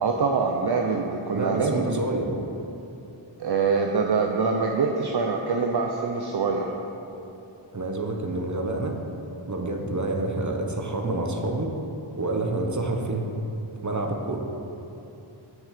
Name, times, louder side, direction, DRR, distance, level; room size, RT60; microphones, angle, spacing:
voice 1, 0.0-2.0 3.4-6.7, right 4 dB, 50° right, 2 dB, 0.8 m, -24 dB
voice 2, 1.3-2.4 7.7-9.0 9.5-11.7 12.2-13.2 13.8-14.4, right 2 dB, 35° right, 2 dB, 1.1 m, -28 dB
7.2 x 6.3 x 6.7 m, 2.9 s
wide cardioid pair, 50°, 48 cm